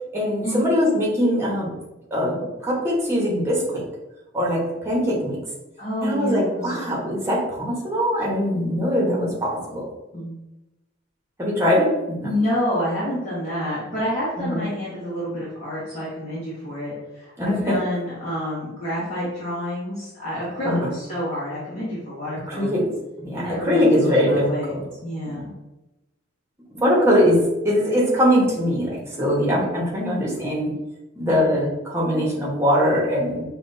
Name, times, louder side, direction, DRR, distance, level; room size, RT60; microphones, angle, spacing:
voice 1, 0.1-1.7 2.1-3.8 4.3-5.4 6.0-9.8 11.4-11.9 12.2-12.3 14.4-14.6 17.4-17.8 20.6-20.9 22.5-22.9 23.2-24.8 25.3-25.4 26.7-27.4 27.6-30.7 31.2-33.4, equal, 15° right, -4 dB, 1.1 m, -21 dB
voice 2, 5.8-7.1 10.1-10.3 12.2-22.7 23.3-24.7 25.0-25.4 31.3-31.5, equal, 40° left, -9 dB, 1.1 m, -28 dB
5.9 x 2.4 x 2.7 m, 0.99 s
head